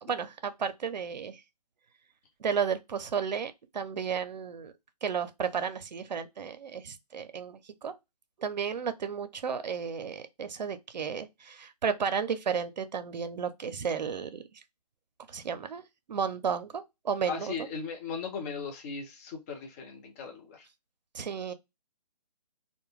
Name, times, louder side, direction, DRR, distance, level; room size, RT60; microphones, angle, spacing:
voice 1, 0.0-1.4 2.4-4.7 5.0-7.9 8.4-14.4 15.3-15.8 16.1-17.5 21.1-21.5, right 6 dB, 85° right, 0.5 m, -33 dB
voice 2, 17.3-20.7, left 5 dB, 20° left, 0.5 m, -38 dB
2.3 x 2.1 x 3.0 m
hypercardioid pair, 150°, 21 cm